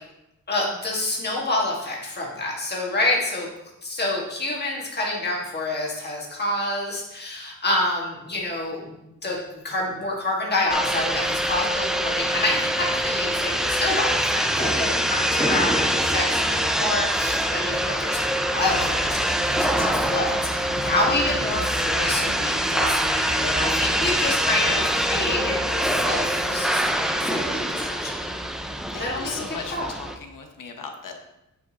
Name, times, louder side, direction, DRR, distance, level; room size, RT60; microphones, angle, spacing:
voice 1, 0.5-3.5 3.8-8.9 9.2-28.1 29.0-29.9, left 2 dB, 30° left, -3 dB, 1.6 m, -28 dB
sound 1, 10.7-30.2, equal, ahead, 0.3 m, -24 dB
voice 2, 11.2-11.5 12.5-12.8 14.5-15.0 19.3-19.9 20.8-21.0 23.6-23.9 28.2-31.1, left 5 dB, 75° left, 4 dB, 0.9 m, -39 dB
sound 2, 18.5-25.4, right 2 dB, 65° right, 1.6 m, -40 dB
sound 3, 18.5-27.7, right 2 dB, 80° right, 2.7 m, -40 dB
9.1 x 5.2 x 2.8 m, 0.89 s
wide cardioid pair, 155°, 32 cm